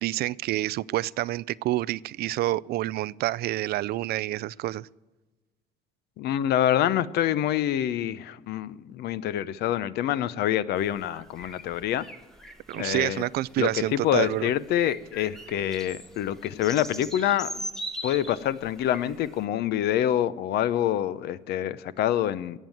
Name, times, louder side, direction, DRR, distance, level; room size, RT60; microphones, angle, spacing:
voice 1, 0.0-4.9 12.7-14.5, right 16 dB, 70° right, 22 dB, 0.4 m, -28 dB
voice 2, 6.2-12.1 12.8-13.2 13.6-17.6 18.0-22.6, left 11 dB, 75° left, 16 dB, 0.7 m, -26 dB
sound 1, 10.8-19.4, equal, 5° left, 1.4 m, -41 dB
17.0 x 7.4 x 7.8 m, 1.2 s
cardioid pair, 110°, 17 cm